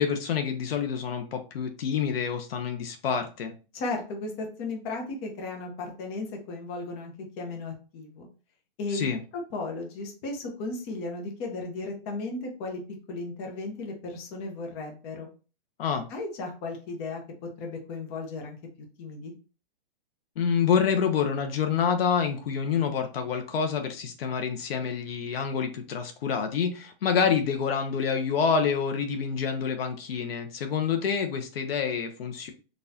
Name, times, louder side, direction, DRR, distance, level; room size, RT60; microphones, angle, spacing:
voice 1, 0.0-3.5 8.9-9.2 15.8-16.1 20.4-32.5, left 6 dB, 75° left, 6 dB, 0.8 m, -27 dB
voice 2, 3.7-8.3 8.8-9.0 9.3-12.8 13.1-15.3 16.1-17.2 17.6-18.6 19.0-19.3, left 3 dB, 30° left, 1 dB, 0.8 m, -35 dB
4.0 x 2.4 x 2.7 m, 0.34 s
hypercardioid pair, 155°, 30 cm